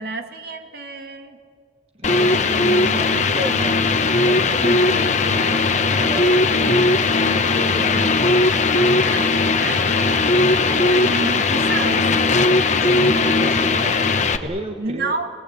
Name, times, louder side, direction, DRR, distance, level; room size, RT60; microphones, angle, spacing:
voice 1, 0.0-1.4 4.6-5.1 9.0-12.1 14.8-15.3, right 2 dB, 60° right, 5 dB, 2.1 m, -30 dB
sound 1, 2.0-14.4, left 3 dB, 45° left, 1.1 m, -18 dB
voice 2, 2.0-8.2 12.8-14.1 14.4-15.2, equal, 35° right, 4 dB, 1.2 m, -32 dB
29.0 x 19.5 x 8.3 m, 2.2 s
head